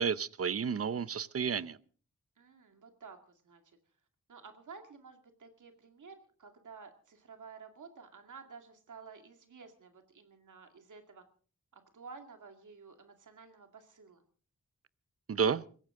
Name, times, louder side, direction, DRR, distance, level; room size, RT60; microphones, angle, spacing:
voice 1, 0.0-1.8 15.3-15.6, right 6 dB, 50° right, 0.7 m, -31 dB
voice 2, 2.4-3.8 4.3-11.2 11.7-14.2, right 5 dB, 85° right, 2.3 m, -52 dB
22.5 x 16.0 x 3.7 m
wide cardioid pair, 125°, 30 cm